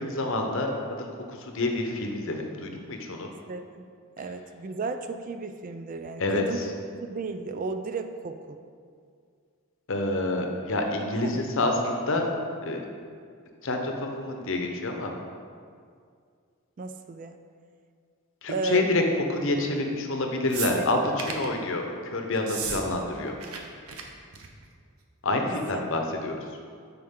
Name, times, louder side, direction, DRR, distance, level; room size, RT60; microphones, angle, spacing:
voice 1, 0.0-3.3 6.2-6.6 9.9-12.2 12.6-12.8 13.6-15.1 18.4-19.0 19.3-23.3 25.2-26.4, left 2 dB, 60° left, 3 dB, 0.8 m, -28 dB
voice 2, 3.3-3.9 4.2-6.6 7.0-8.6 11.0-11.4 16.8-17.3 18.5-18.9 20.8-20.9 25.7-25.8, right 4 dB, 35° right, 8 dB, 0.3 m, -34 dB
sound 1, 20.5-21.5 22.4-22.8 23.1-23.6 23.9-24.0 24.3-24.6 25.6-25.7, right 6 dB, 70° right, 0.8 m, -34 dB
9.8 x 4.4 x 3.7 m, 2.2 s
head